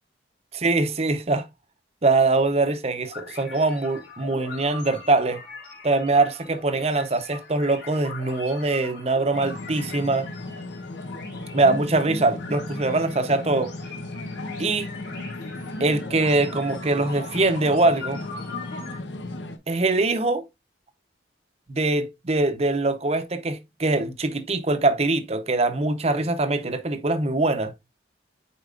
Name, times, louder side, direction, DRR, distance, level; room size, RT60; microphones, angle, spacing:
voice 1, 0.5-1.5 2.0-5.4 5.8-10.3 11.5-13.7 14.6-14.9 15.8-18.2 19.7-20.4 21.7-27.7, right 2 dB, 35° right, 0.8 m, -23 dB
sound 1, 3.0-19.0, left 3 dB, 70° left, 3.7 m, -42 dB
sound 2, 9.3-19.6, left 2 dB, 85° left, 0.9 m, -35 dB
8.2 x 4.6 x 2.4 m
head